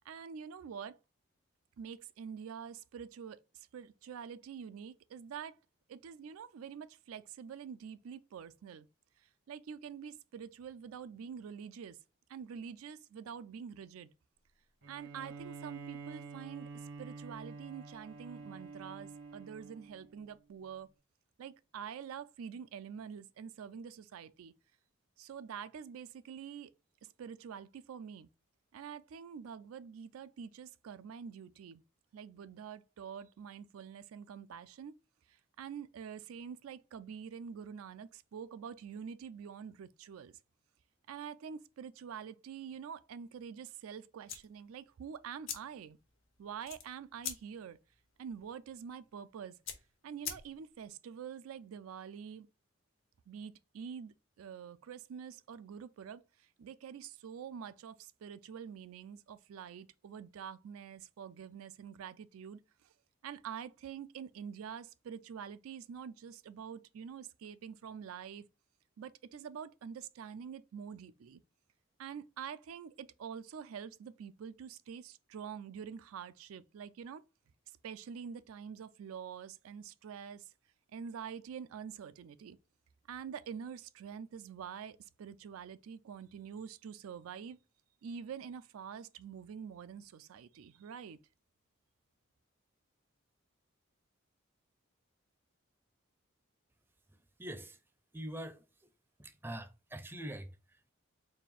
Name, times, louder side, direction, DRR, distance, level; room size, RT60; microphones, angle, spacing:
voice 1, 0.0-1.0 1.8-5.6 5.9-8.9 9.5-12.0 12.3-14.1 14.9-16.7 17.0-20.9 21.4-24.5 25.2-26.7 27.2-28.3 28.7-31.8 32.1-34.9 35.3-40.3 41.1-46.0 46.4-47.8 48.2-49.6 50.0-52.5 53.3-62.9 63.2-68.5 69.0-71.4 72.0-77.2 77.8-80.5 80.9-82.6 83.1-87.6 88.0-91.2, right 7 dB, 85° right, 0.4 m, -46 dB
Bowed string instrument, 14.8-20.3, right 4 dB, 65° right, 0.8 m, -48 dB
sound 1, 44.2-50.9, left 8 dB, 70° left, 1.0 m, -47 dB
voice 2, 97.1-97.8 98.1-98.9 99.2-100.9, right 1 dB, 10° right, 0.4 m, -45 dB
4.2 x 2.4 x 3.4 m
head